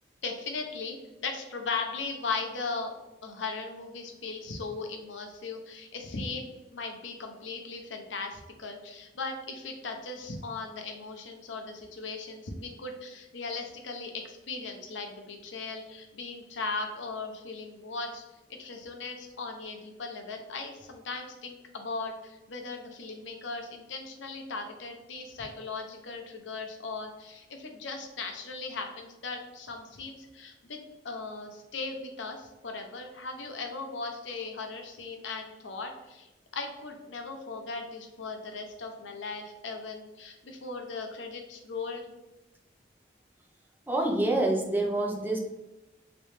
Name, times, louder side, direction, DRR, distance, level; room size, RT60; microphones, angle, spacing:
voice 1, 0.2-2.9 3.2-18.2 18.5-30.8 31.0-36.3 36.5-42.1, left 4 dB, 80° left, 4 dB, 0.6 m, -38 dB
voice 2, 43.9-45.4, right 2 dB, 10° right, 1 dB, 0.4 m, -26 dB
3.1 x 3.0 x 3.2 m, 1.0 s
head